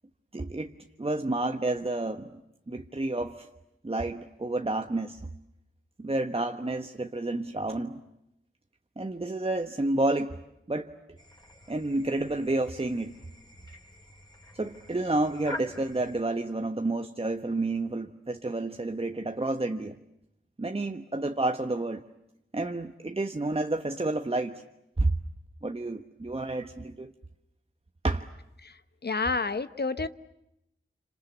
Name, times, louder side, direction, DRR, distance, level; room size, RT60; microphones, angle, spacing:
voice 1, 0.3-0.7 1.0-2.4 2.7-3.5 3.8-5.2 6.0-8.0 9.0-10.4 10.7-11.2 11.7-13.1 14.5-20.0 20.6-22.0 22.5-24.6 25.0-25.1 25.6-27.1 28.0-28.3, right 2 dB, 25° right, 5 dB, 1.3 m, -30 dB
sound 1, 11.2-16.2, left 1 dB, 20° left, 5.4 m, -46 dB
voice 2, 29.0-30.1, left 4 dB, 50° left, 13 dB, 1.1 m, -29 dB
27.0 x 26.5 x 8.4 m, 0.84 s
cardioid pair, 45°, 21 cm